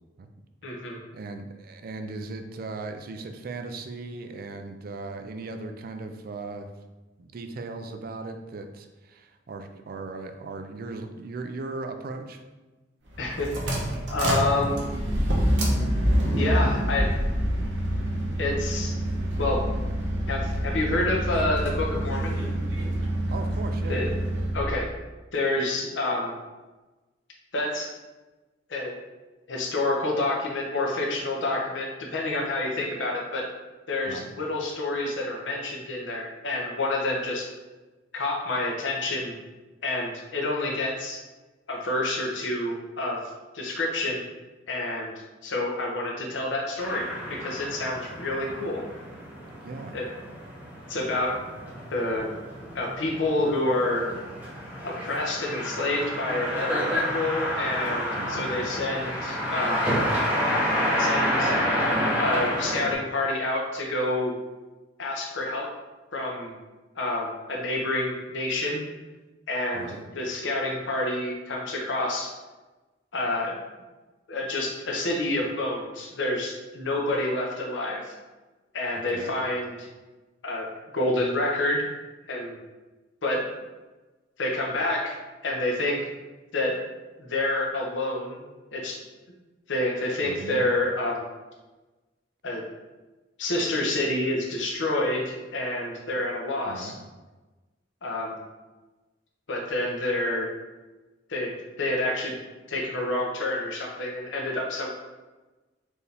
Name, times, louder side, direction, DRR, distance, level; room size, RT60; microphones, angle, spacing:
voice 1, 0.6-1.0 13.2-13.5 14.1-14.9 16.4-17.1 18.4-18.9 19.4-19.6 20.3-22.4 23.9-24.1 24.5-24.9 25.3-26.3 27.5-27.9 28.7-28.9 29.5-33.5 33.9-37.5 38.1-39.3 39.8-41.2 41.7-43.2 43.5-44.2 44.7-45.1 45.4-48.8 49.9-50.1 50.9-51.4 51.9-52.3 52.7-54.0 54.8-59.9 61.0-61.5 62.2-64.3 65.0-65.7 66.1-66.5 67.0-68.8 69.5-72.3 73.1-73.5 74.3-78.1 78.7-79.9 80.4-80.7 80.9-81.9 82.3-82.6 83.2-83.4 84.4-85.2 85.4-86.0 86.5-86.8 87.2-88.4 88.7-89.0 89.7-91.3 92.4-92.6 93.4-96.9 98.0-98.4 99.5-100.5 101.3-102.4 102.7-104.9, left 2 dB, 90° left, -1 dB, 0.8 m, -28 dB
voice 2, 1.1-6.7 7.2-12.4 23.3-24.0 34.1-34.3 49.6-50.0 58.1-58.5 69.7-70.0 79.1-79.3 90.2-90.6 96.7-97.0, right 3 dB, 55° right, 6 dB, 0.4 m, -38 dB
sound 1, 13.1-24.6, equal, 75° right, 0.9 m, -26 dB
sound 2, 46.8-62.9, equal, 10° right, 1.0 m, -29 dB
4.6 x 2.7 x 3.3 m, 1.2 s
head